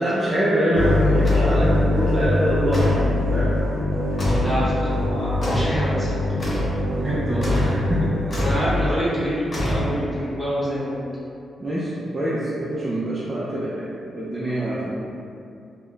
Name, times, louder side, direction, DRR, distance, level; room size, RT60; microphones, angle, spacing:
voice 1, 0.0-2.9 3.3-3.5 4.5-4.6 7.0-8.1 11.6-15.0, right 1 dB, 20° right, -8 dB, 0.4 m, -24 dB
sound 1, 0.7-8.9, left 2 dB, 85° right, 0.4 m, -23 dB
sound 2, 1.3-1.6 2.7-3.1 4.2-4.6 5.4-5.8 6.4-6.8 7.4-7.8 8.3-8.7 9.5-10.2, left 1 dB, 35° left, 0.5 m, -26 dB
voice 2, 4.4-6.6 8.3-11.0, equal, ahead, -10 dB, 0.9 m, -27 dB
2.3 x 2.1 x 3.7 m, 2.5 s
cardioid pair, 125°, 0 cm